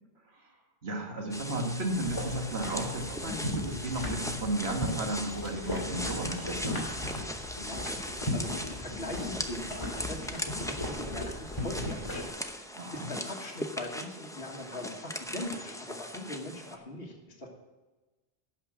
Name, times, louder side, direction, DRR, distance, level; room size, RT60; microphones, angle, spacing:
voice 1, 0.8-6.8 12.8-13.1, right 1 dB, 80° right, 2 dB, 1.9 m, -34 dB
sound 1, 1.3-16.8, left 1 dB, 5° left, 0.6 m, -39 dB
sound 2, 2.0-12.3, left 1 dB, 25° left, 2.3 m, -37 dB
voice 2, 7.6-11.3 11.6-17.5, left 1 dB, 65° left, -2 dB, 1.9 m, -41 dB
11.5 x 5.8 x 7.3 m, 1.2 s
omnidirectional pair, 1.1 m